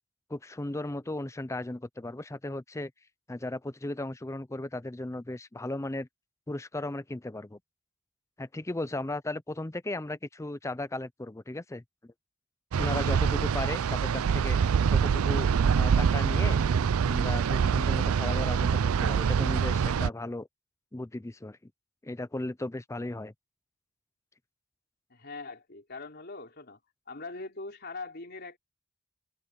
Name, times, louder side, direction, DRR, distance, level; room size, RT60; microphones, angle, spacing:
voice 1, 0.3-2.9 3.3-6.1 6.5-7.6 8.4-12.1 12.8-14.6 14.9-16.6 17.1-20.5 20.9-21.7 22.0-23.3, left 2 dB, 15° left, 0.5 m, -36 dB
sound 1, 12.7-20.1, right 6 dB, 85° right, 0.4 m, -25 dB
voice 2, 25.1-26.8 27.1-28.6, left 3 dB, 50° left, 3.9 m, -41 dB
open air
head